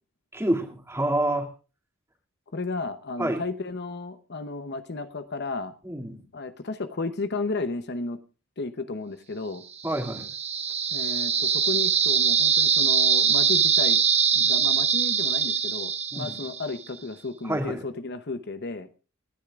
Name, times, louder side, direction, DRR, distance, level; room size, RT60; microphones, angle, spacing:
voice 1, 0.3-1.5 3.2-3.4 5.8-6.2 9.8-10.2 16.1-16.4 17.4-17.8, right 1 dB, 10° right, 3 dB, 2.5 m, -27 dB
voice 2, 2.5-5.8 6.3-8.2 8.6-9.6 10.9-14.0 14.3-18.9, left 3 dB, 50° left, 10 dB, 0.8 m, -33 dB
sound 1, 9.8-16.8, right 7 dB, 30° right, 1.1 m, -23 dB
29.5 x 10.0 x 2.4 m, 0.34 s
head